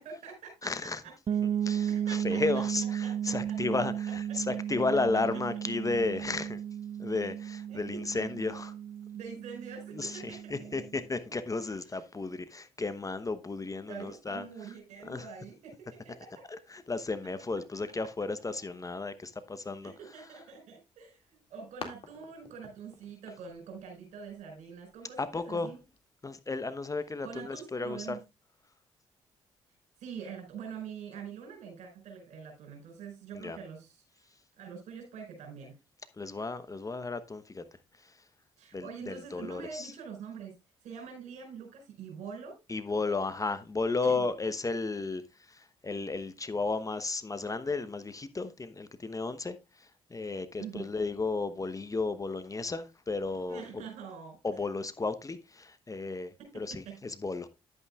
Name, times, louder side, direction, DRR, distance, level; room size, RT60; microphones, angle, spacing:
voice 1, 0.0-3.6 4.1-4.4 4.7-4.8 7.7-8.3 9.1-10.9 11.6-12.1 13.9-16.5 19.8-25.8 27.2-28.2 30.0-34.0 34.6-35.7 38.6-40.5 40.8-42.5 44.0-44.3 50.6-50.9 53.5-54.4 56.4-57.0, right 6 dB, 65° right, 5.1 m, -45 dB
voice 2, 0.6-1.0 1.6-6.6 7.0-8.7 9.9-14.4 15.0-15.3 16.5-19.9 25.2-25.7 26.2-28.2 33.3-33.6 36.2-37.6 38.7-39.9 42.7-45.2 45.5-49.6 50.1-53.8 54.4-57.5, left 3 dB, 25° left, 1.0 m, -33 dB
sound 1, 1.3-11.0, right 9 dB, 40° right, 0.5 m, -34 dB
sound 2, 20.9-26.0, left 4 dB, 45° left, 2.2 m, -51 dB
11.0 x 8.7 x 2.4 m
hypercardioid pair, 45°, 13 cm